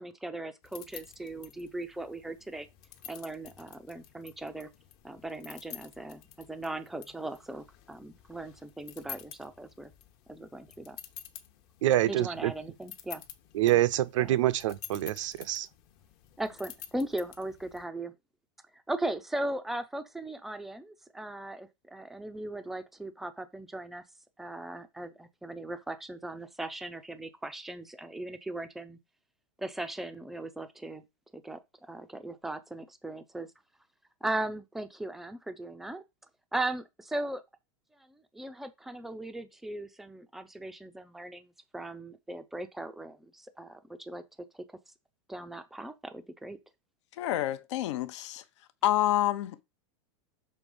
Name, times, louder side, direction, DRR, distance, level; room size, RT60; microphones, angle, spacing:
voice 1, 0.0-2.7 3.1-4.7 5.0-9.9 10.3-11.0 12.1-13.2 14.2-14.4 16.4-18.1 18.9-24.0 24.4-29.0 29.6-31.0 31.3-31.6 31.9-33.5 34.2-36.0 36.5-37.4 38.1-44.2 44.5-44.6 45.3-46.6, right 1 dB, ahead, 0.4 m, -38 dB
sound 1, 0.6-17.8, left 11 dB, 40° left, 0.9 m, -50 dB
voice 2, 11.8-12.5 13.5-15.7, right 14 dB, 90° right, 0.7 m, -26 dB
voice 3, 47.1-48.4 48.8-49.6, left 13 dB, 70° left, 0.8 m, -28 dB
6.4 x 3.4 x 5.3 m
supercardioid pair, 165°, 16 cm